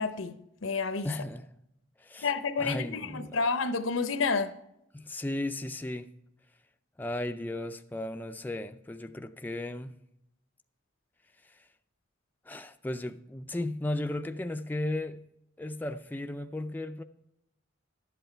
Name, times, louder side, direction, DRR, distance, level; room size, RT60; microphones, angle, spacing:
voice 1, 0.0-1.1 2.2-4.5, left 4 dB, 85° left, 0.8 m, -30 dB
voice 2, 1.0-1.5 2.0-2.3 2.6-3.4 4.9-6.1 7.0-9.9 11.5-11.6 12.5-15.2 15.6-17.0, left 1 dB, 10° left, 0.3 m, -35 dB
11.5 x 7.9 x 4.5 m
head